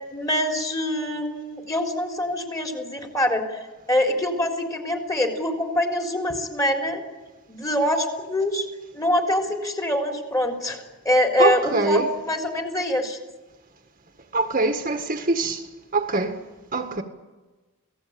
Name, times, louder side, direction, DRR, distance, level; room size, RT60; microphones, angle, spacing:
voice 1, 0.1-3.6 3.9-7.0 7.5-8.7 8.9-13.2, left 1 dB, 15° left, 3.8 m, -24 dB
voice 2, 11.4-12.1 14.3-15.6 15.9-16.4 16.7-17.0, right 3 dB, 40° right, 1.8 m, -23 dB
28.0 x 17.5 x 8.8 m
head